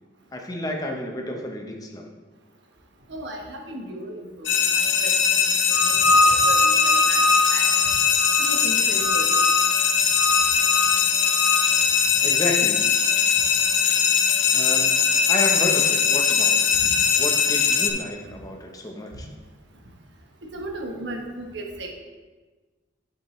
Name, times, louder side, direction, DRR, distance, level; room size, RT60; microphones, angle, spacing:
voice 1, 0.3-2.1 12.2-12.9 14.5-15.0 15.3-16.8 17.2-19.3, left 1 dB, 20° left, 1 dB, 0.8 m, -31 dB
voice 2, 3.1-4.5 4.8-5.5 5.8-7.2 7.5-7.7 8.4-9.3 20.4-21.9, right 1 dB, 70° right, 2 dB, 1.1 m, -35 dB
sound 1, 4.5-17.9, left 7 dB, 80° left, 0.7 m, -20 dB
sound 2, 5.7-8.6 9.0-9.7 10.1-11.7, left 1 dB, ahead, 1.2 m, -23 dB
7.9 x 7.0 x 3.2 m, 1.3 s
head